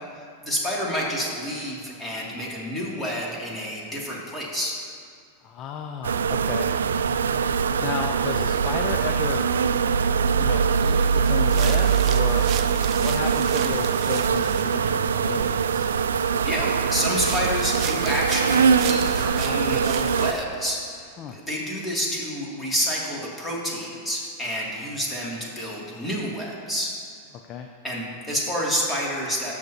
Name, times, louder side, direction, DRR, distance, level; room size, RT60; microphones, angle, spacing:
voice 1, 0.0-4.7 16.2-26.9 27.8-29.5, equal, 10° left, -5 dB, 2.6 m, -29 dB
voice 2, 5.4-6.7 7.8-9.4 10.4-12.5 13.0-15.9 21.2-21.4 27.5-27.7, left 7 dB, 40° left, 3 dB, 0.6 m, -33 dB
sound 1, 6.0-20.3, right 6 dB, 85° right, 0.3 m, -22 dB
sound 2, 10.7-20.4, right 9 dB, 45° right, 0.6 m, -37 dB
18.0 x 6.6 x 2.9 m, 2.2 s
hypercardioid pair, 105°, 0 cm